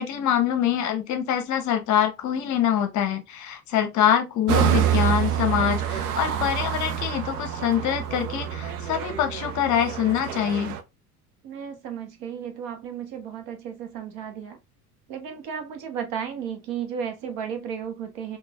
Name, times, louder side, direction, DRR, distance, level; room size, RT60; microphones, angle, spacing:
voice 1, 0.0-10.8, left 9 dB, 40° left, 0.7 m, -24 dB
sound 1, 4.5-10.8, right 10 dB, 70° right, 0.7 m, -27 dB
voice 2, 11.4-14.6 15.1-18.4, right 7 dB, 50° right, 1.0 m, -34 dB
3.9 x 2.5 x 2.3 m
hypercardioid pair, 80°, 46 cm